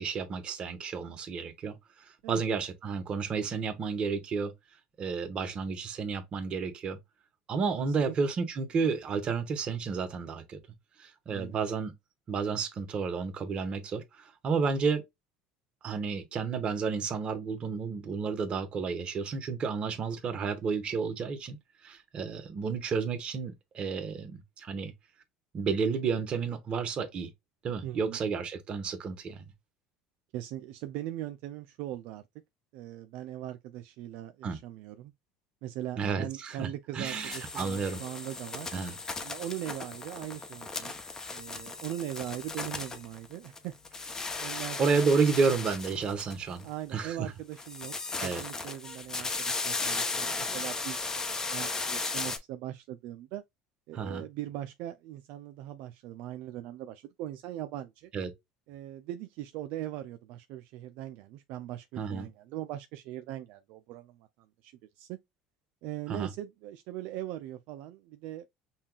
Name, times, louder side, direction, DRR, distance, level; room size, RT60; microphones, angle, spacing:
voice 1, 0.0-4.5 5.0-7.0 7.5-10.6 11.0-11.9 12.3-15.1 15.8-21.6 21.8-24.9 25.5-27.3 27.6-29.5 34.4-34.6 36.0-36.7 36.9-38.0 38.7-38.9 44.2-44.3 44.8-47.3 48.2-48.4 53.9-54.2 58.1-58.3 62.0-62.3 66.1-66.3, right 5 dB, 40° right, 1.0 m, -31 dB
voice 2, 7.8-8.2 11.3-11.6 27.8-28.2 30.3-32.2 32.7-35.1 35.6-38.7 39.2-41.0 41.3-43.7 44.4-45.1 46.6-47.9 48.2-53.4 53.9-58.1 58.7-64.3 64.6-65.2 65.8-68.5, right 13 dB, 70° right, 0.4 m, -40 dB
sound 1, 37.0-43.6 43.8-46.7 47.5-52.4, left 3 dB, 20° left, 0.8 m, -36 dB
5.5 x 2.3 x 2.3 m
supercardioid pair, 105°, 3 cm